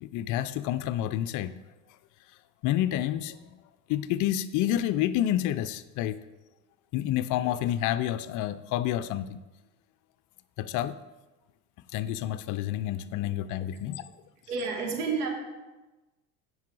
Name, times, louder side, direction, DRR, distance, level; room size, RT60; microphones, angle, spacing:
voice 1, 0.0-1.5 2.6-3.6 3.9-6.2 6.9-9.4 10.6-11.0 11.9-14.1, left 12 dB, 45° left, 14 dB, 0.5 m, -29 dB
voice 2, 14.5-15.3, right 5 dB, 85° right, 2 dB, 1.8 m, -30 dB
9.2 x 5.4 x 4.6 m, 1.1 s
hypercardioid pair, 85°, 44 cm